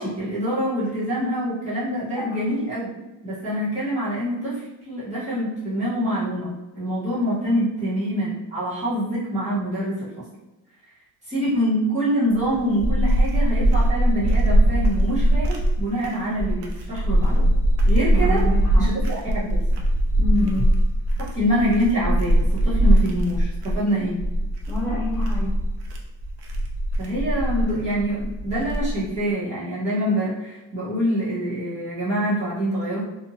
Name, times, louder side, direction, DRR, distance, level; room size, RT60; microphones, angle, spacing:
voice 1, 0.0-2.9 3.2-10.1 11.2-17.5 17.8-18.5 18.8-19.7 21.2-24.2 27.0-33.0, equal, 15° right, -10 dB, 1.2 m, -25 dB
sound 1, 12.3-29.2, right 1 dB, 65° right, 0.6 m, -21 dB
voice 2, 18.1-18.9 20.2-20.8 24.7-25.6, left 2 dB, 5° left, -11 dB, 0.5 m, -28 dB
2.7 x 2.5 x 2.7 m, 1.0 s
cardioid pair, 165°, 43 cm